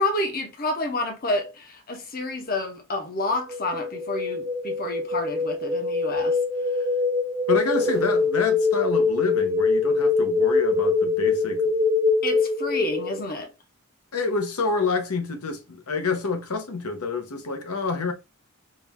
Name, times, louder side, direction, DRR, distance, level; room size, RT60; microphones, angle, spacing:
voice 1, 0.0-6.4 12.2-13.5, left 2 dB, 40° left, 0.7 m, -29 dB
sound 1, 3.3-13.2, left 3 dB, 15° right, 0.6 m, -23 dB
voice 2, 7.5-11.7 14.1-18.1, left 4 dB, 85° left, 0.8 m, -28 dB
4.6 x 2.3 x 3.4 m
head